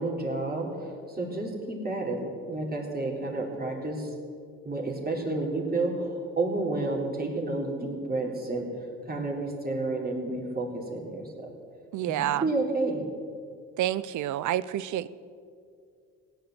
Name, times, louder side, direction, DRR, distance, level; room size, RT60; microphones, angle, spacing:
voice 1, 0.0-4.1 4.7-8.7 9.1-11.3 12.4-13.1, right 2 dB, 30° right, 0 dB, 3.5 m, -30 dB
voice 2, 11.9-12.5 13.8-15.1, right 12 dB, 80° right, 18 dB, 0.6 m, -28 dB
17.0 x 8.9 x 7.9 m, 2.3 s
cardioid pair, 90°, 30 cm